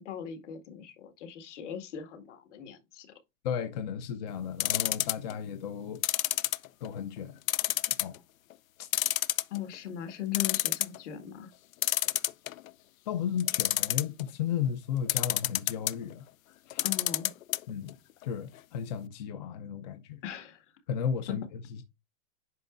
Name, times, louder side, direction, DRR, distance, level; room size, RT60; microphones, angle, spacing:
voice 1, 0.0-3.1 9.5-11.5 16.8-17.4 20.2-20.7 21.3-21.4, left 10 dB, 60° left, 2.0 m, -39 dB
voice 2, 3.4-6.0 6.8-7.3 8.0-8.2 8.8-8.9 13.1-16.2 16.7-16.8 17.7-17.9 18.2-20.2 20.9-21.4, left 8 dB, 30° left, 0.6 m, -34 dB
sound 1, 4.6-5.3 6.0-7.0 7.5-8.2 8.5-8.6 8.9-9.7 10.1-10.2 10.3-11.0 11.8-12.7 13.4-14.2 15.1-15.9 16.7-17.6 17.9-18.0 18.2-18.3, left 14 dB, 75° left, 0.6 m, -28 dB
9.3 x 5.8 x 2.6 m
supercardioid pair, 165°, 41 cm